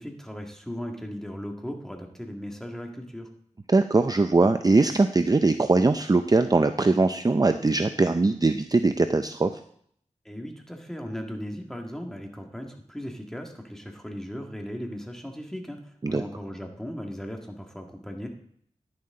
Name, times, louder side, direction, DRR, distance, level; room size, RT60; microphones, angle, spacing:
voice 1, 0.0-3.3 10.2-18.3, equal, 5° left, 2 dB, 1.9 m, -37 dB
voice 2, 3.7-9.6 16.0-16.2, right 3 dB, 30° right, 9 dB, 0.5 m, -21 dB
10.5 x 10.5 x 3.7 m, 0.65 s
wide cardioid pair, 70°, 13 cm